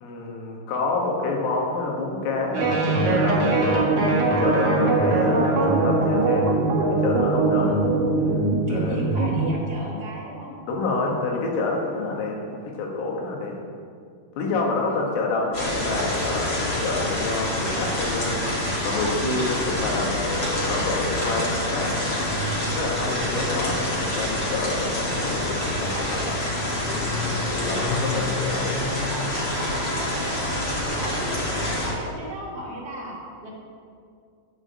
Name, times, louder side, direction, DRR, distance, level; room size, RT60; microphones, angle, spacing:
voice 1, 0.0-6.5 6.8-7.7 8.7-9.0 10.7-13.5 14.4-21.9 22.7-26.3 27.0-28.7, left 3 dB, 80° left, -1 dB, 4.3 m, -28 dB
sound 1, 2.5-9.5, right 3 dB, 70° right, 1.3 m, -21 dB
voice 2, 8.7-10.5 14.9-15.5 28.9-33.5, right 1 dB, 25° right, -5 dB, 1.2 m, -36 dB
sound 2, 15.5-31.9, left 1 dB, 35° left, 1.7 m, -26 dB
13.5 x 5.0 x 7.8 m, 2.3 s
omnidirectional pair, 5.8 m